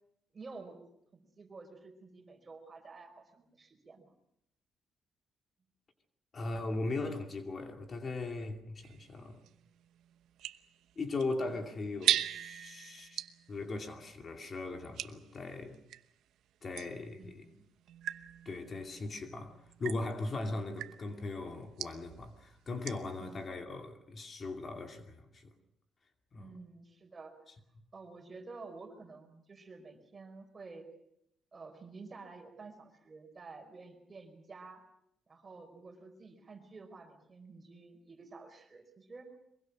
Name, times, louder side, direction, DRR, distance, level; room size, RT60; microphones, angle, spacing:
voice 1, 0.3-0.8 1.4-4.1 11.5-11.6 17.2-17.6 23.2-23.4 26.3-27.4 27.9-30.9 31.5-34.8 35.3-39.3, right 3 dB, 30° right, 4.9 m, -51 dB
voice 2, 6.3-9.4 11.0-13.2 13.5-15.8 16.6-17.5 18.4-25.5 26.3-26.5, left 2 dB, 40° left, 2.5 m, -39 dB
sound 1, 8.8-16.1 16.7-23.2, right 11 dB, 90° right, 0.9 m, -40 dB
23.5 x 22.5 x 6.2 m
cardioid pair, 115°, 0 cm